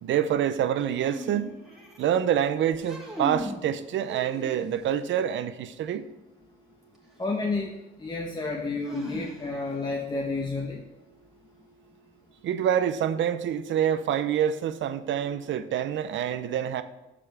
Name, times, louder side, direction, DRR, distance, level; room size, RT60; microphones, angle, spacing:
voice 1, 0.0-1.5 2.0-6.0 12.4-16.8, right 9 dB, 70° right, 0.6 m, -26 dB
sound 1, 0.9-2.2 2.7-3.6 4.1-5.0 6.9-7.0 8.9-9.7, equal, ahead, 2.5 m, -38 dB
voice 2, 7.2-7.7 8.0-10.8, left 3 dB, 20° left, 1.0 m, -30 dB
6.8 x 5.1 x 6.0 m
cardioid pair, 90°, 20 cm